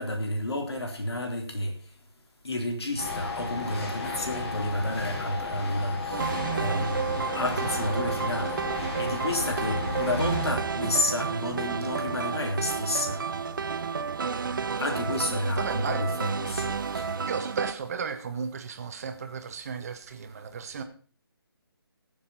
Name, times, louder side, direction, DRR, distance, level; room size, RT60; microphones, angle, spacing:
voice 1, 0.0-1.7 2.4-8.6 9.0-13.2 14.8-17.1, left 1 dB, 80° left, 3 dB, 3.9 m, -30 dB
sound 1, 3.0-10.5, left 3 dB, 30° left, 6.8 m, -33 dB
sound 2, 6.1-17.7, right 5 dB, 50° right, 1.0 m, -31 dB
voice 2, 15.6-16.0 17.3-20.8, right 6 dB, 35° right, 6 dB, 1.6 m, -34 dB
22.0 x 7.3 x 4.3 m, 0.39 s
figure-of-eight pair, 160°, 13 cm